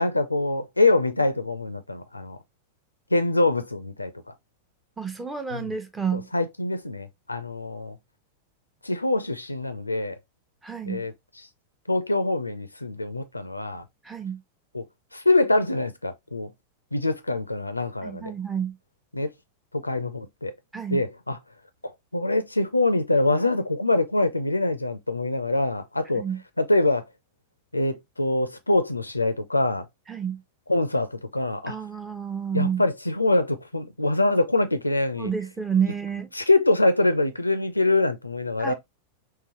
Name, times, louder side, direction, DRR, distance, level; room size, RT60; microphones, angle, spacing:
voice 1, 0.0-2.4 3.1-4.3 5.5-5.7 6.1-8.0 8.8-10.2 10.9-11.1 11.9-13.8 14.7-14.8 15.1-16.5 16.9-18.3 19.1-19.3 19.7-20.5 20.9-21.4 21.8-26.2 26.6-27.0 27.7-29.9 30.7-31.8 32.5-35.3 36.4-38.7, left 2 dB, 85° left, 0.4 m, -24 dB
voice 2, 5.0-6.3 10.6-11.0 14.0-14.4 18.0-18.8 20.7-21.0 26.1-26.4 30.1-30.4 31.7-32.8 35.2-36.3 38.6-38.7, right 7 dB, 10° right, 0.6 m, -29 dB
3.7 x 2.9 x 2.8 m
figure-of-eight pair, 90°, 0 cm